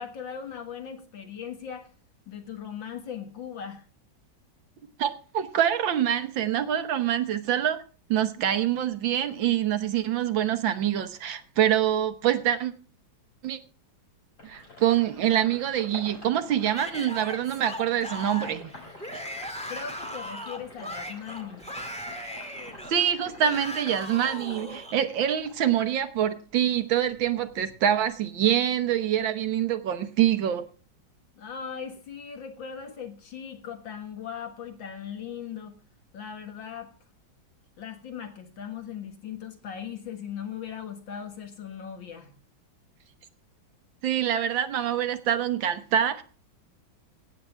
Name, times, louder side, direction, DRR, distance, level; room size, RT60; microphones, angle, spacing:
voice 1, 0.0-1.9 2.3-3.8 19.7-21.6 31.3-35.8 36.1-36.9 37.8-42.3, left 8 dB, 70° left, 2.2 m, -39 dB
voice 2, 5.0-7.8 8.1-12.7 13.4-13.6 14.4-18.7 22.9-30.7 44.0-46.2, right 10 dB, 75° right, 1.7 m, -25 dB
Sink (filling or washing), 14.4-26.7 27.0-28.4, left 2 dB, 40° left, 6.5 m, -47 dB
Yell / Screaming, 16.7-25.0, equal, 5° left, 1.5 m, -38 dB
16.5 x 8.7 x 3.4 m
omnidirectional pair, 2.2 m